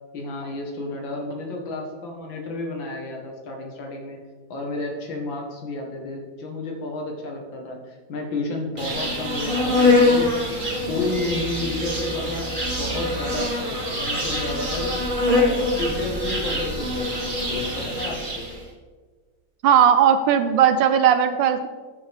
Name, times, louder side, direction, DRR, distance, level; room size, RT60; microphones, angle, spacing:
voice 1, 0.1-4.2 4.5-10.3 10.6-15.0 15.3-18.5, left 2 dB, 85° left, 2 dB, 2.3 m, -31 dB
Insect, 8.8-18.6, left 2 dB, 25° right, 1.8 m, -24 dB
voice 2, 19.6-21.7, right 8 dB, 80° right, 9 dB, 1.3 m, -17 dB
13.5 x 7.2 x 3.5 m, 1.5 s
omnidirectional pair, 2.0 m